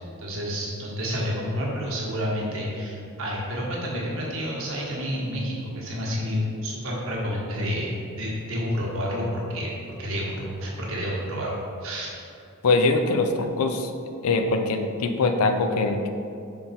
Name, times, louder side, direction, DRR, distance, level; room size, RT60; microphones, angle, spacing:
voice 1, 0.2-9.7 10.0-11.5 11.8-12.1, equal, 60° right, -4 dB, 1.3 m, -29 dB
voice 2, 12.6-13.9 14.2-16.1, left 3 dB, 75° left, 6 dB, 0.5 m, -22 dB
5.7 x 3.9 x 4.3 m, 2.5 s
head